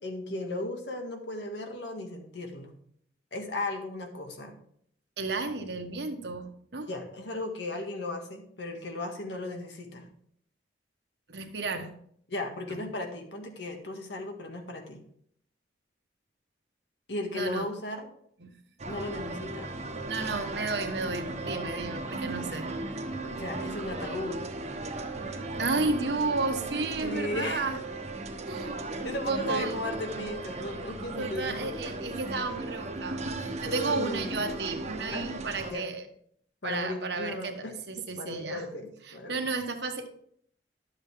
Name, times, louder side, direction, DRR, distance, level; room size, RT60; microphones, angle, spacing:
voice 1, 0.0-2.7 3.3-4.6 6.9-10.1 12.3-15.0 17.1-18.1 18.9-19.7 23.4-24.4 27.0-27.7 29.0-31.9 33.6-34.5 35.1-35.3 35.6-35.9 36.6-39.5, left 2 dB, 80° left, 4 dB, 1.7 m, -36 dB
voice 2, 5.2-6.9 11.3-11.9 12.7-12.8 17.3-17.7 18.4-18.5 20.1-22.7 25.6-27.8 28.5-28.8 29.3-29.8 31.2-36.1 36.6-38.7 39.1-40.1, right 3 dB, 70° right, 5 dB, 1.2 m, -32 dB
sound 1, 18.8-35.7, right 2 dB, 40° right, 1.0 m, -36 dB
11.5 x 7.3 x 3.6 m, 0.66 s
head